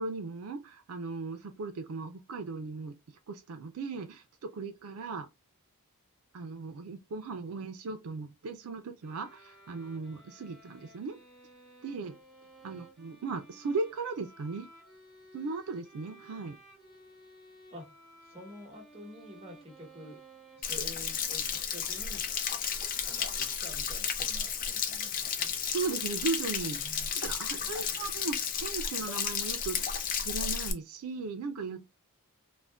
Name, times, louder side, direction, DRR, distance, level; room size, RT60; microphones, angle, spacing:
voice 1, 0.0-2.9 3.3-5.3 6.3-11.2 11.8-12.2 12.6-14.7 15.3-16.6 25.7-31.9, right 4 dB, 80° right, 0.4 m, -37 dB
sound 1, 9.0-24.0, right 1 dB, ahead, 1.0 m, -56 dB
voice 2, 18.2-20.2 20.6-22.3 23.0-25.5 26.7-27.1 27.6-28.1, equal, 25° right, 1.0 m, -49 dB
Stream / Splash splatter / Trickle dribble, 20.6-30.7, left 7 dB, 40° left, 0.4 m, -33 dB
2.5 x 2.1 x 3.3 m
head